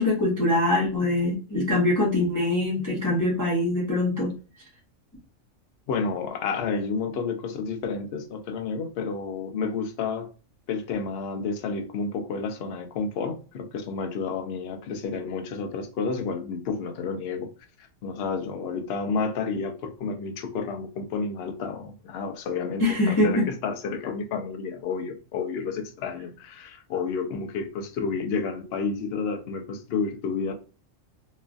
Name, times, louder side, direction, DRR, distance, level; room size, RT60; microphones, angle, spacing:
voice 1, 0.0-4.3 22.8-23.5, left 1 dB, 15° left, 0.7 m, -23 dB
voice 2, 5.9-10.3 10.7-17.5 18.0-30.5, left 5 dB, 60° left, 0.7 m, -30 dB
3.0 x 2.4 x 2.3 m
omnidirectional pair, 1.4 m